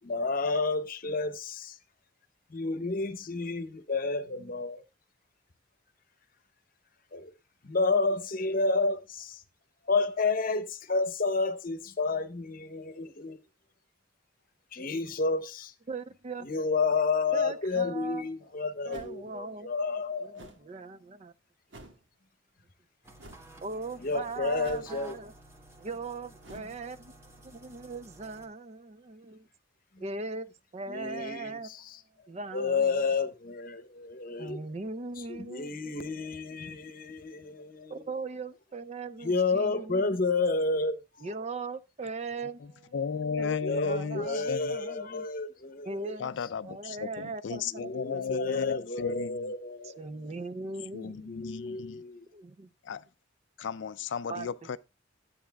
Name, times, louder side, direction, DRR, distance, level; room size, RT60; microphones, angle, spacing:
voice 1, 0.0-1.8 2.5-4.8 7.1-7.3 7.6-9.4 9.8-13.4 14.7-15.7 16.4-20.5 24.0-25.2 26.5-26.6 29.9-30.0 30.9-32.0 32.5-34.6 35.2-38.1 39.2-41.0 43.6-46.2 47.7-50.2 51.3-52.2, left 3 dB, 45° left, 0.8 m, -30 dB
voice 2, 15.9-16.5 17.3-18.3 18.8-19.7 20.2-21.3 23.6-25.3 25.8-29.5 30.0-30.5 30.7-31.7 32.3-33.0 34.4-36.0 37.9-40.2 41.2-42.9 43.4-43.6 43.8-45.3 45.8-46.3 46.6-48.8 49.8-51.3 51.7-51.8 52.3-52.7 54.3-54.5, right 3 dB, 35° right, 0.4 m, -39 dB
sound 1, 18.9-19.3 20.3-20.7 21.7-22.0 23.2-23.5 24.6-25.1 26.4-26.8, right 1 dB, 70° right, 1.6 m, -50 dB
sound 2, 23.0-28.5, right 2 dB, 15° right, 1.3 m, -53 dB
voice 3, 42.9-44.7 46.2-49.5 50.9-52.0 52.8-53.0 53.6-54.8, left 6 dB, 65° left, 0.4 m, -34 dB
12.5 x 8.5 x 2.3 m
head